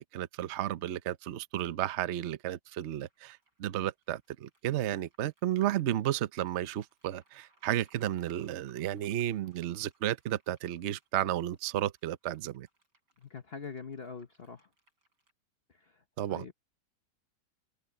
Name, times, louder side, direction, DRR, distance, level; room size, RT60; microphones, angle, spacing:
voice 1, 0.0-12.7 16.2-16.5, right 12 dB, 55° right, 0.8 m, -33 dB
sound 1, 3.0-15.3, right 3 dB, 75° right, 8.4 m, -70 dB
voice 2, 13.2-14.7 16.3-16.5, left 5 dB, 40° left, 1.0 m, -43 dB
omnidirectional pair, 1.8 m